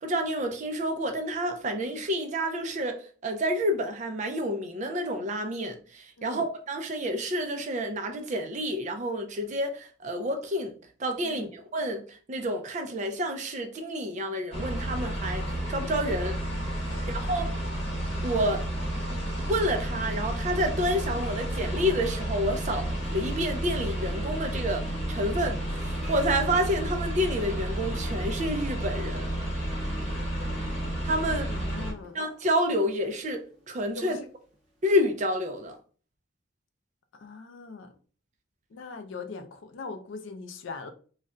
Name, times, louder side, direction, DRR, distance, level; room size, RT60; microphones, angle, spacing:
voice 1, 0.0-10.7 11.0-16.4 17.1-17.5 18.2-18.7 19.4-29.3 31.0-31.5 32.1-34.2 34.8-35.8, equal, 35° right, 0.4 m, -29 dB
sound 1, 14.5-31.9, right 1 dB, 30° left, 0.9 m, -31 dB
Harp, 21.0-35.0, left 1 dB, 5° right, 0.8 m, -49 dB
voice 2, 31.5-32.2 33.9-34.3 37.1-37.9 38.7-40.9, left 4 dB, 70° left, 0.4 m, -41 dB
2.3 x 2.1 x 3.7 m
head